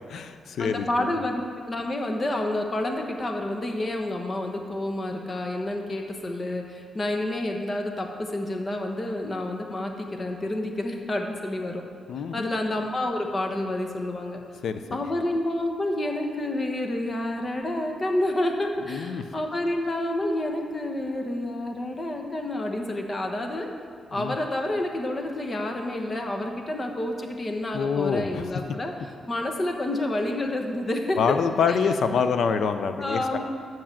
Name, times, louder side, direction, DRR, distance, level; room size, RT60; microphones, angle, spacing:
voice 1, 0.1-1.1 12.1-12.5 14.6-14.8 18.9-19.2 24.2-24.4 27.7-28.5 31.2-33.4, left 6 dB, 75° left, 9 dB, 0.6 m, -26 dB
voice 2, 0.6-1.4 1.7-11.8 12.3-14.4 14.9-23.7 24.1-28.9 29.3-31.2 31.7-32.3 33.0-33.4, left 1 dB, 30° left, 3 dB, 1.0 m, -29 dB
7.2 x 6.1 x 7.4 m, 2.3 s
cardioid pair, 115°, 0 cm